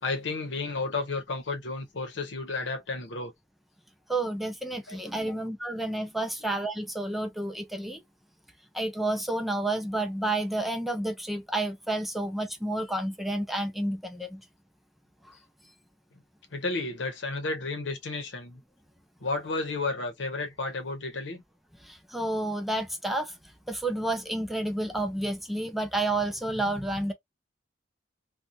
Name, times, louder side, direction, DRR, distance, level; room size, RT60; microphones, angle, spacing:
voice 1, 0.0-3.3 4.9-5.0 5.3-5.4 16.5-18.6 19.2-21.4, left 3 dB, 85° left, 0.8 m, -32 dB
voice 2, 4.1-8.0 8.7-14.4 15.2-15.3 21.8-23.3 23.7-27.1, right 1 dB, ahead, 0.4 m, -30 dB
2.8 x 2.3 x 2.4 m
head